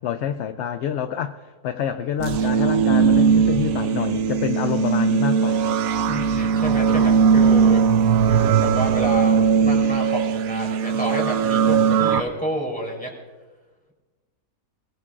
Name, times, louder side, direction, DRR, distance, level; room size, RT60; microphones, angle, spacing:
voice 1, 0.0-1.3 1.6-5.8, left 9 dB, 65° left, 10 dB, 0.7 m, -27 dB
sound 1, 2.2-12.2, right 6 dB, 75° right, 1.1 m, -19 dB
voice 2, 6.1-7.8 8.3-13.1, equal, 5° left, -2 dB, 3.6 m, -30 dB
21.5 x 17.5 x 2.5 m, 1.3 s
omnidirectional pair, 1.6 m